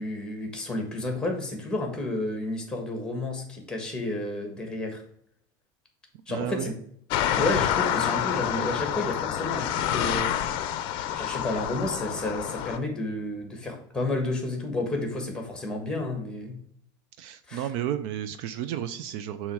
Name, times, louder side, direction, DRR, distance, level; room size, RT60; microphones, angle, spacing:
voice 1, 0.0-5.0 6.3-6.7 7.3-10.3 11.1-16.6 17.5-17.6, left 2 dB, 5° left, 3 dB, 1.4 m, -31 dB
voice 2, 6.3-6.7 17.2-19.5, right 10 dB, 55° right, 11 dB, 0.5 m, -32 dB
sound 1, 7.1-12.8, left 10 dB, 50° left, 0.5 m, -28 dB
7.1 x 3.1 x 4.6 m, 0.69 s
supercardioid pair, 150°, 11 cm